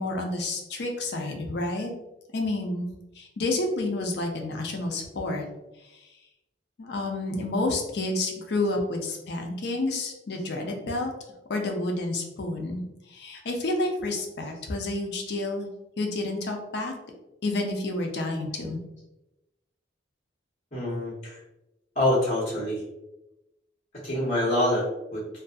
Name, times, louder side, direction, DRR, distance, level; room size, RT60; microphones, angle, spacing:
voice 1, 0.0-1.9 2.3-2.9 3.2-5.5 6.8-11.1 11.5-15.7 16.0-16.9 17.4-18.8, left 2 dB, 65° left, 2 dB, 0.5 m, -29 dB
voice 2, 20.7-21.4 21.9-22.8 24.0-25.2, left 1 dB, 40° left, -9 dB, 1.1 m, -26 dB
2.5 x 2.3 x 2.5 m, 0.95 s
head